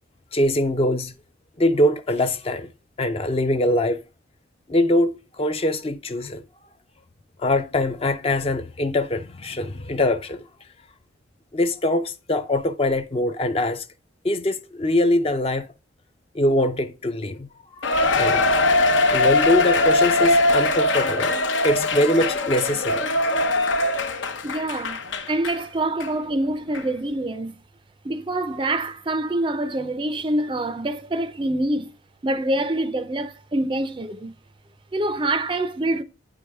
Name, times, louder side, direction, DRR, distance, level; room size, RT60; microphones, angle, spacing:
voice 1, 0.3-1.2 1.6-2.7 3.0-4.0 4.7-6.4 7.4-10.4 11.5-13.8 14.2-15.7 16.3-17.5 17.8-18.6 19.1-23.0, left 1 dB, 30° left, 0.5 m, -23 dB
Cheering, 17.8-25.6 26.0-26.1 26.7-26.8, left 2 dB, 80° left, 0.8 m, -21 dB
voice 2, 24.4-25.0 25.3-27.6 28.0-31.9 32.2-34.3 34.9-36.0, right 1 dB, 25° right, 0.4 m, -25 dB
9.1 x 4.7 x 3.5 m
head